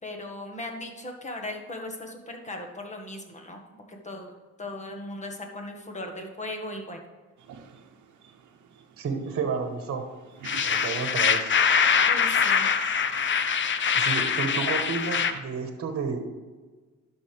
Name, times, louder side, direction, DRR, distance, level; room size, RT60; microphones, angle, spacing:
voice 1, 0.0-4.3 4.6-7.0 12.0-12.7, left 1 dB, 25° left, 2 dB, 1.7 m, -38 dB
sound 1, 7.4-15.4, right 7 dB, 75° right, 1.0 m, -45 dB
voice 2, 9.0-10.0 10.6-11.5 13.9-16.2, right 5 dB, 50° right, 5 dB, 1.4 m, -31 dB
sound 2, 10.4-15.3, left 7 dB, 40° left, 0.6 m, -24 dB
11.5 x 6.5 x 3.5 m, 1.3 s
cardioid pair, 90°, 30 cm